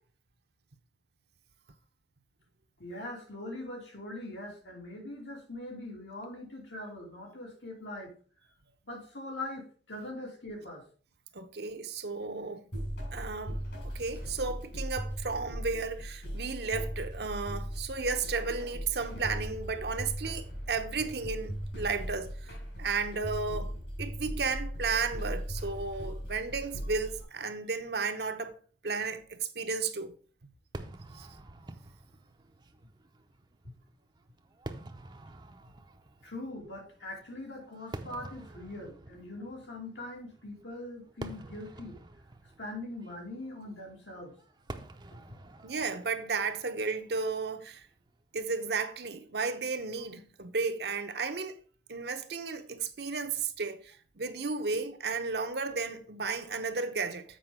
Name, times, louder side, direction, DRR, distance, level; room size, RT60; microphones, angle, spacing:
voice 1, 2.8-8.1 8.8-10.8 36.2-42.0 42.6-44.3, left 1 dB, 90° left, 2.9 m, -42 dB
voice 2, 11.3-12.7 13.1-22.3 22.8-28.6 28.8-30.1 31.1-31.3 45.6-47.8 48.3-51.5 51.9-57.2, right 4 dB, 65° right, 0.9 m, -33 dB
sound 1, 12.7-27.2, equal, 75° left, 4.2 m, -38 dB
Fireworks, 30.7-48.1, right 2 dB, 25° right, 0.6 m, -48 dB
7.8 x 4.9 x 4.9 m
head